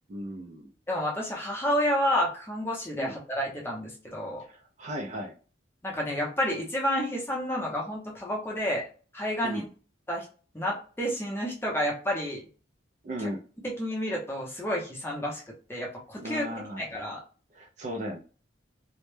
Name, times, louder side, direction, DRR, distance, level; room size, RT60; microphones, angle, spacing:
voice 1, 0.1-0.7 3.0-3.1 4.5-5.3 9.4-9.7 13.0-13.4 16.2-16.8 17.5-18.2, equal, 40° right, 1 dB, 0.3 m, -36 dB
voice 2, 0.9-4.4 5.8-8.8 9.1-9.7 10.1-10.3 10.5-12.4 13.2-13.3 13.6-15.4 15.7-17.2, equal, 10° left, -2 dB, 0.6 m, -30 dB
2.1 x 2.0 x 3.1 m, 0.38 s
head